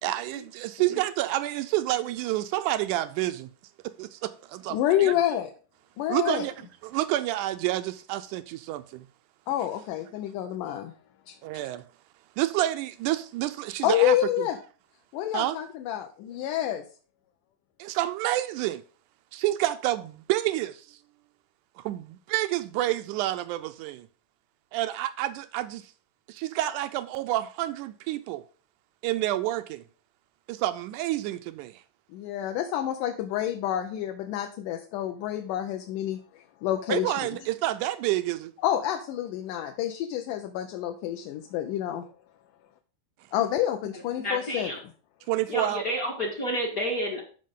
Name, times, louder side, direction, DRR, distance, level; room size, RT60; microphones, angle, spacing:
voice 1, 0.0-3.5 4.0-5.1 6.1-6.5 6.8-9.1 11.4-11.8 12.4-14.5 15.3-15.6 17.8-18.8 19.3-21.0 21.8-24.1 24.7-25.9 26.3-28.4 29.0-29.8 30.5-31.8 36.9-38.5 45.3-45.8, right 15 dB, 85° right, 1.8 m, -29 dB
voice 2, 4.7-5.5 6.0-6.5 9.5-10.9 11.3-11.4 13.8-14.6 15.1-16.8 32.1-37.2 38.6-42.0 43.3-44.7, left 12 dB, 75° left, 2.2 m, -28 dB
voice 3, 43.9-44.8 45.5-47.2, equal, 50° left, 1.1 m, -30 dB
13.0 x 5.2 x 3.7 m
omnidirectional pair, 4.0 m